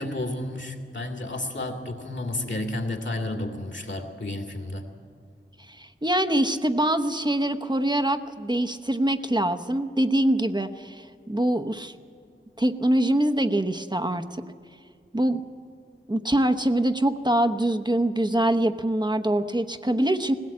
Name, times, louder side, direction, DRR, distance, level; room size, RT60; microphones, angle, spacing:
voice 1, 0.0-4.8, left 1 dB, 60° left, 4 dB, 2.4 m, -31 dB
voice 2, 5.7-11.9 12.6-14.2 15.1-15.4 16.1-20.3, right 1 dB, 20° right, 7 dB, 0.9 m, -24 dB
19.0 x 17.0 x 8.6 m, 2.1 s
wide cardioid pair, 40°, 21 cm